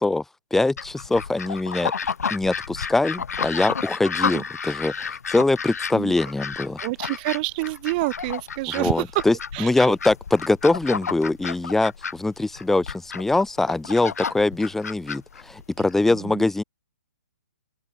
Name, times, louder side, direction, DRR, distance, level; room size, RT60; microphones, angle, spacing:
voice 1, 0.5-1.9 2.3-4.9 5.3-6.8 8.7-16.6, left 2 dB, 5° left, 1.1 m, -23 dB
sound 1, 0.8-15.9, left 6 dB, 75° left, 4.0 m, -31 dB
voice 2, 6.8-9.2 9.5-9.9 15.8-16.4, right 22 dB, 35° right, 1.5 m, -28 dB
open air
hypercardioid pair, 135°, 9 cm